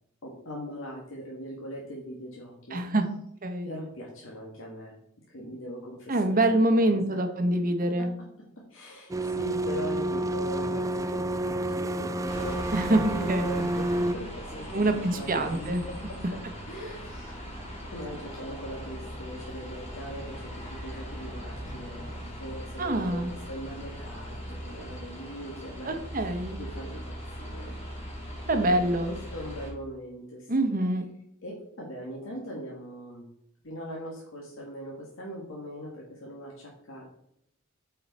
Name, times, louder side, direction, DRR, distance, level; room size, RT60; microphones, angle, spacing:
voice 1, 0.2-2.8 3.6-5.0 5.3-6.4 6.7-7.3 7.8-8.1 8.7-16.0 16.7-17.3 17.9-27.8 28.5-30.7 31.4-33.3 33.6-37.1, equal, 65° left, -3 dB, 1.7 m, -41 dB
voice 2, 2.7-3.1 3.4-3.7 6.1-8.1 12.7-13.0 13.3-13.5 14.7-15.8 22.8-23.3 25.8-26.6 28.5-29.1 30.5-31.0, right 1 dB, 45° right, 7 dB, 1.0 m, -25 dB
sound 1, 9.1-14.1, right 1 dB, 15° right, 0.3 m, -29 dB
sound 2, 12.3-29.7, equal, 30° left, 2.9 m, -40 dB
8.4 x 4.7 x 4.1 m, 0.72 s
head